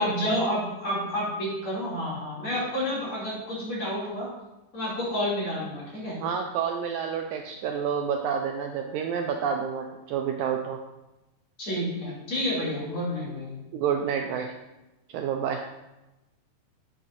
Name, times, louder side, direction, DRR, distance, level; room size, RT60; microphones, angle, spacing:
voice 1, 0.0-4.3 4.7-6.2 11.6-13.6, equal, 40° left, -7 dB, 3.5 m, -29 dB
voice 2, 6.2-10.8 13.7-14.5 15.1-15.6, right 7 dB, 80° right, 4 dB, 1.8 m, -29 dB
9.9 x 8.6 x 2.6 m, 0.99 s
omnidirectional pair, 3.8 m